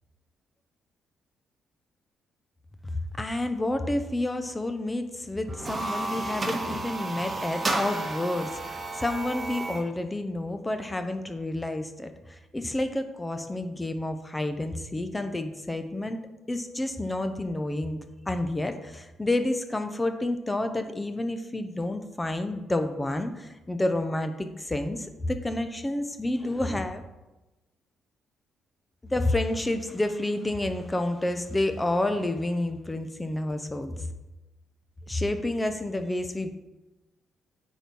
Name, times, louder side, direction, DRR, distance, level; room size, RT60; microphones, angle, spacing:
voice 1, 3.2-16.2 16.5-18.0 18.3-27.0 29.1-34.0 35.1-36.6, left 1 dB, 15° left, 7 dB, 0.7 m, -29 dB
sound 1, 5.5-9.9, right 2 dB, 30° right, 1.3 m, -32 dB
9.0 x 4.6 x 5.3 m, 1.1 s
cardioid pair, 90°, 0 cm